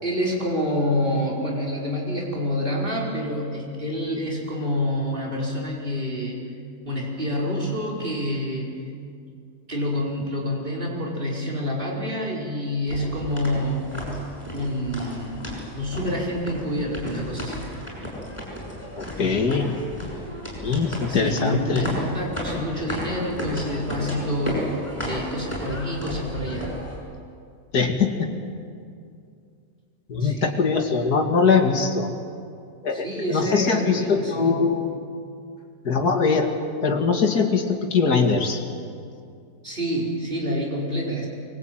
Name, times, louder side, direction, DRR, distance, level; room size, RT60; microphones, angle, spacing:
voice 1, 0.0-6.4 6.8-8.7 9.7-13.9 14.5-17.6 20.9-24.7 25.0-26.7 30.1-30.6 32.9-34.7 39.6-41.3, equal, 35° right, -3 dB, 5.0 m, -27 dB
sound 1, 12.9-27.0, equal, 15° left, 6.9 m, -34 dB
voice 2, 19.0-19.7 20.6-21.9 27.7-28.3 30.1-32.1 32.8-34.9 35.8-36.5 36.8-38.6, left 5 dB, 75° left, 3 dB, 2.7 m, -22 dB
24.0 x 21.5 x 9.0 m, 2.3 s
omnidirectional pair, 1.7 m